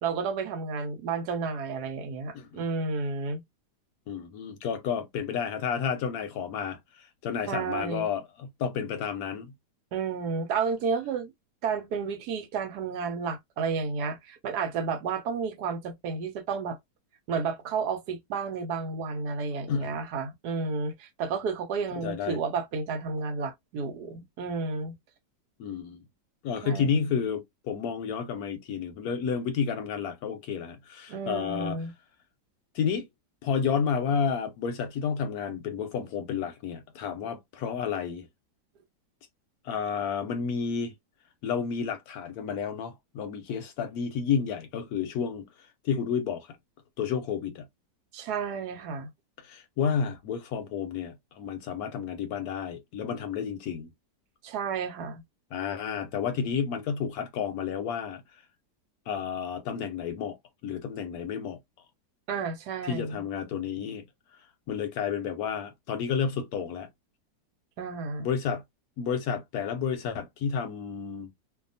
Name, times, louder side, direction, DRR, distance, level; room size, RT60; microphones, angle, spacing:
voice 1, 0.0-3.4 7.5-8.1 9.9-11.3 11.6-16.8 17.3-24.9 26.6-27.1 31.1-31.9 48.1-49.1 54.4-55.2 62.3-63.2 67.8-68.3, right 5 dB, 75° right, 1.1 m, -31 dB
voice 2, 4.1-9.5 19.7-19.9 21.9-22.4 25.6-26.0 26.4-31.8 32.7-33.1 33.4-38.3 39.6-40.9 41.4-46.6 47.0-47.7 49.4-53.9 55.5-58.4 59.1-60.4 60.6-61.6 62.9-64.0 64.7-66.9 68.2-68.6 69.0-71.3, left 6 dB, 70° left, 0.9 m, -31 dB
2.7 x 2.3 x 2.5 m
omnidirectional pair, 1.8 m